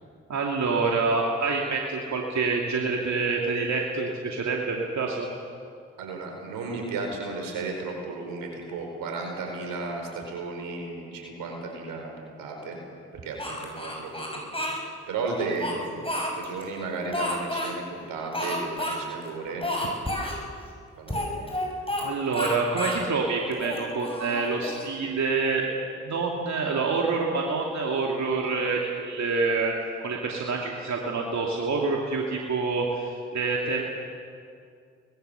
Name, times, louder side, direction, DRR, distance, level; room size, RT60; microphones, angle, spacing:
voice 1, 0.3-5.3 22.0-25.6 26.0-33.9, right 4 dB, 55° right, -1 dB, 2.7 m, -27 dB
voice 2, 6.0-12.8 13.2-14.5 14.8-16.0 16.4-19.6 21.0-21.4, right 3 dB, 80° right, 2 dB, 4.8 m, -34 dB
Speech, 13.4-14.8 15.4-16.6 17.1-17.7 18.3-19.0 19.2-19.3 19.6-20.4 21.1-22.1 22.3-23.0 23.5-24.9, left 1 dB, 15° left, 6.7 m, -30 dB
24.0 x 20.5 x 7.0 m, 2.3 s
hypercardioid pair, 40°, 33 cm